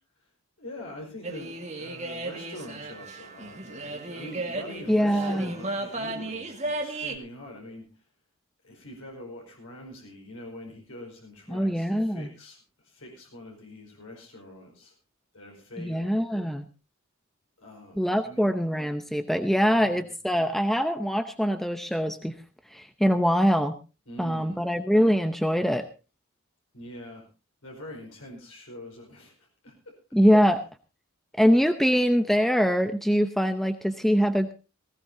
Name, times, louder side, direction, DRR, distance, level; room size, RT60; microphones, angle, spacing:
voice 1, 0.6-8.0 8.6-14.9 15.3-16.2 17.6-18.5 19.6-20.1 24.0-24.7 26.7-27.3 27.6-29.8, left 1 dB, 90° left, 0 dB, 5.0 m, -44 dB
sound 1, 1.2-7.2, right 2 dB, 35° right, 2.0 m, -35 dB
voice 2, 4.9-5.5 11.5-12.3 15.8-16.6 18.0-22.3 22.7-23.8 24.2-25.8 30.1-30.6 31.4-34.5, equal, ahead, 8 dB, 0.7 m, -23 dB
19.0 x 16.5 x 2.7 m, 0.31 s
head